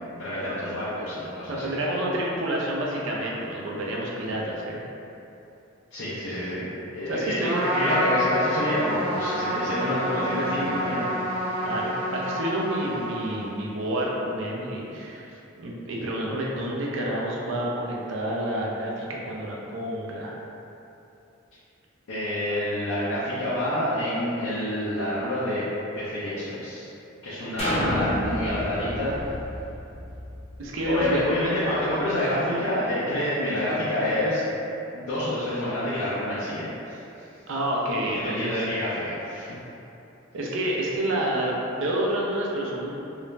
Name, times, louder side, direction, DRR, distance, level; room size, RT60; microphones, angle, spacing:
voice 1, 0.0-1.6 5.9-6.6 6.9-11.1 22.1-25.6 25.9-26.9 27.2-29.2 30.9-34.4 34.9-37.3 38.1-39.6, left 1 dB, 85° left, -10 dB, 0.5 m, -28 dB
voice 2, 1.5-4.8 7.1-7.6 11.6-15.3 15.6-20.4 30.6-31.2 37.5-38.7 40.3-43.1, right 1 dB, 70° right, -3 dB, 0.4 m, -29 dB
Trumpet, 7.4-13.6, equal, 25° right, 0.9 m, -28 dB
sound 1, 27.6-31.4 31.9-32.0, left 1 dB, 30° left, 0.6 m, -30 dB
2.4 x 2.0 x 3.1 m, 2.9 s
head